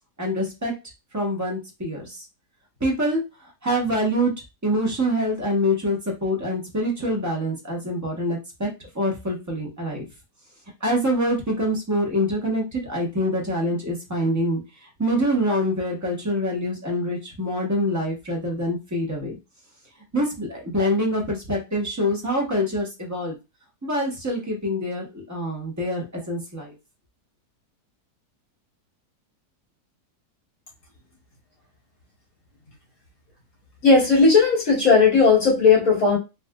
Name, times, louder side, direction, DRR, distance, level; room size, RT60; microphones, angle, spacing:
voice 1, 0.2-0.7 1.1-2.3 2.8-4.3 4.6-8.7 8.9-10.1 10.8-19.3 20.1-23.4 23.8-26.8, equal, 15° right, -1 dB, 0.6 m, -25 dB
voice 2, 33.8-36.2, left 4 dB, 60° left, -4 dB, 2.1 m, -16 dB
4.0 x 2.4 x 2.2 m, 0.26 s
omnidirectional pair, 1.7 m